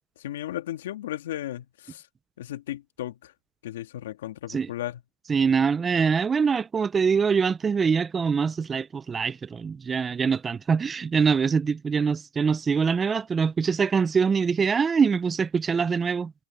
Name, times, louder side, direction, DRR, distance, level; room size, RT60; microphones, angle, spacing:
voice 1, 0.2-2.0 2.4-3.3 3.6-5.0, left 13 dB, 65° left, 2.0 m, -35 dB
voice 2, 5.3-16.3, right 6 dB, 15° right, 0.3 m, -24 dB
hypercardioid pair, 150°, 0 cm